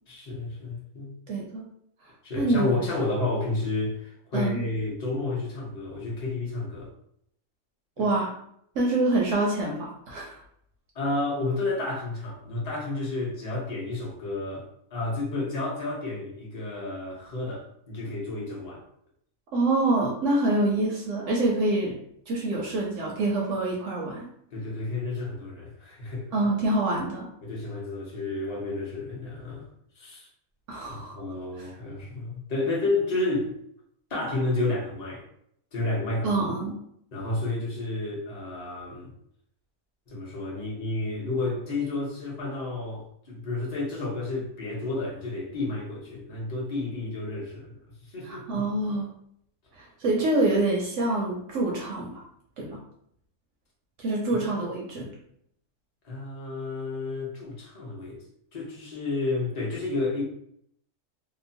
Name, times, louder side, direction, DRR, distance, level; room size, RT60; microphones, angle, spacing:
voice 1, 0.1-1.1 2.2-6.9 8.0-8.1 10.9-18.8 24.5-26.3 27.4-29.7 29.9-30.3 30.9-33.5 34.1-35.2 35.7-36.4 37.1-39.1 40.1-47.8 48.0-48.6 54.3-54.4 56.0-58.2 58.5-60.2, left 2 dB, 40° left, -4 dB, 0.6 m, -31 dB
voice 2, 1.3-1.6 2.4-2.7 4.3-4.6 8.0-8.3 8.7-10.4 19.5-21.9 22.3-24.3 26.3-27.3 30.7-31.2 31.6-31.7 36.2-36.8 48.2-49.1 49.7-52.2 52.6-52.8 54.0-55.1, right 2 dB, 65° right, -2 dB, 0.8 m, -26 dB
2.9 x 2.0 x 2.6 m, 0.70 s
omnidirectional pair, 1.5 m